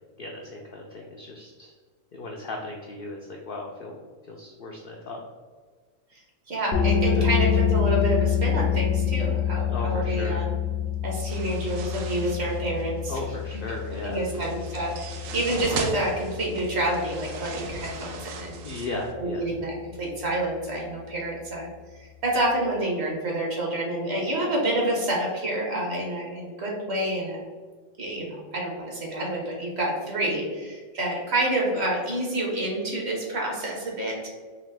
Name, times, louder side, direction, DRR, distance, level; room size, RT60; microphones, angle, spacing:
voice 1, 0.2-1.7 2.1-5.2 7.0-7.4 9.6-10.5 13.1-14.7 18.6-19.6, left 2 dB, 65° left, 0 dB, 0.5 m, -36 dB
voice 2, 6.5-10.5 11.0-13.1 14.0-18.6 19.2-21.7 22.2-27.4 28.0-34.3, right 1 dB, 55° right, -2 dB, 1.3 m, -28 dB
sound 1, 6.7-18.1, left 8 dB, 85° left, 1.0 m, -27 dB
sound 2, 11.3-19.1, right 4 dB, 75° right, 0.9 m, -38 dB
3.8 x 3.0 x 3.3 m, 1.5 s
omnidirectional pair, 1.4 m